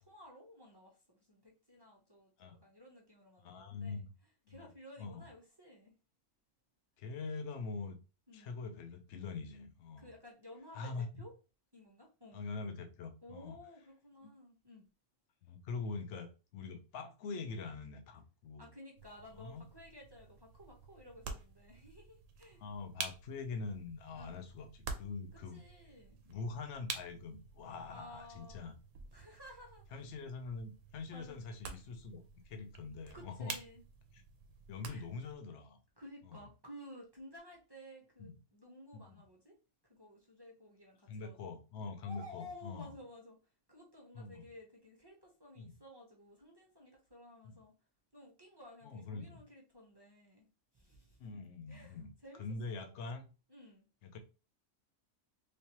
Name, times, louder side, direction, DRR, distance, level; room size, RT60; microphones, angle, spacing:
voice 1, 0.0-4.0 4.5-5.9 8.3-8.5 10.0-11.3 11.7-12.4 13.2-14.9 18.6-22.6 24.2-24.4 25.3-26.2 27.9-28.6 29.1-29.8 31.1-31.4 33.1-33.8 34.9-35.1 36.0-39.5 39.9-41.6 42.0-43.4 43.7-47.7 48.1-50.5 50.7-51.2 51.7-52.4 52.7-53.0 53.5-53.8, left 1 dB, 25° right, 0.6 m, -55 dB
voice 2, 3.4-4.1 4.5-4.7 5.0-5.2 7.0-8.0 8.3-10.1 10.7-11.2 12.3-13.6 15.4-18.7 19.3-19.6 22.6-25.6 26.3-28.7 29.9-33.6 34.7-35.8 36.2-36.4 38.2-38.3 38.9-39.2 41.1-42.9 44.1-44.5 45.6-45.7 47.4-47.6 48.8-49.4 51.2-53.3 54.0-54.2, left 4 dB, 60° left, 0.9 m, -44 dB
sound 1, 19.0-35.3, right 5 dB, 65° right, 0.9 m, -49 dB
3.3 x 3.1 x 2.9 m
omnidirectional pair, 1.6 m